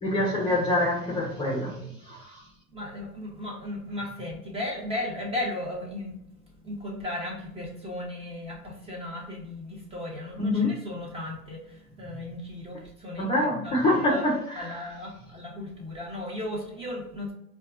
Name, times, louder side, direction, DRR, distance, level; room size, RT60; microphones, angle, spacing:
voice 1, 0.0-2.4 10.4-10.8 13.2-14.9, left 1 dB, 15° left, -4 dB, 0.8 m, -26 dB
voice 2, 2.7-6.2 6.6-13.3 13.6-14.2 14.6-17.3, left 1 dB, 10° right, -2 dB, 1.0 m, -36 dB
4.3 x 2.4 x 2.4 m, 0.78 s
hypercardioid pair, 100°, 47 cm